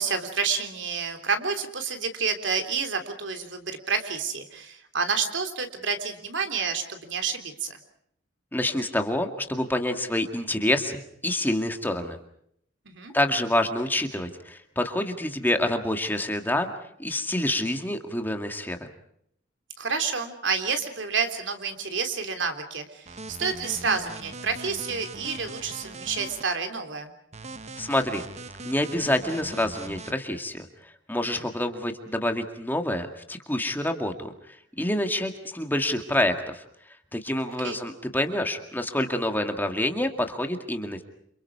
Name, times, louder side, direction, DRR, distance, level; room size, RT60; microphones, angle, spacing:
voice 1, 0.0-7.8 12.8-13.1 19.8-27.1 31.2-31.4 37.6-37.8, right 5 dB, 70° right, 7 dB, 3.4 m, -29 dB
voice 2, 8.5-12.2 13.1-16.7 17.0-18.9 27.8-28.3 28.6-41.0, left 1 dB, 10° left, 5 dB, 2.1 m, -27 dB
sound 1, 23.1-26.4 27.3-30.1, right 3 dB, 35° right, 1.2 m, -40 dB
29.5 x 28.0 x 4.8 m, 0.69 s
head